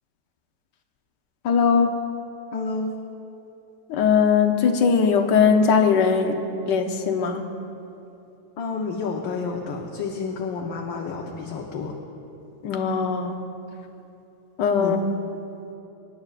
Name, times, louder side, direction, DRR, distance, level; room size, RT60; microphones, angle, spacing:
voice 1, 1.4-2.0 3.9-6.4 6.7-7.5 12.6-13.4 14.6-15.0, left 6 dB, 70° left, 5 dB, 1.4 m, -20 dB
voice 2, 2.5-2.9 8.6-11.9 14.8-15.0, left 4 dB, 85° left, 0 dB, 1.6 m, -30 dB
25.0 x 11.0 x 2.4 m, 2.8 s
omnidirectional pair, 2.0 m